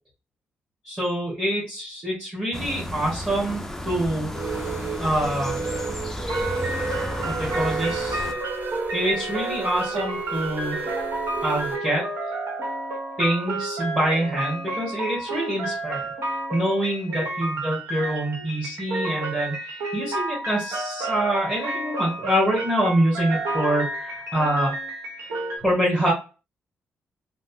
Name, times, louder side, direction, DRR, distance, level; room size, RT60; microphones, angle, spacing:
voice 1, 0.8-4.3 5.0-5.6 7.3-8.3 8.9-10.8 11.4-12.0 13.2-16.0 16.5-24.7 25.2-25.3 25.6-26.1, right 1 dB, 20° right, -6 dB, 1.4 m, -25 dB
sound 1, 2.5-8.3, equal, 10° left, 0.4 m, -33 dB
sound 2, 4.3-11.8, right 4 dB, 35° right, 1.0 m, -32 dB
sound 3, 6.3-25.6, right 2 dB, 80° right, 1.1 m, -31 dB
3.1 x 2.1 x 2.7 m, 0.33 s
cardioid pair, 85°, 5 cm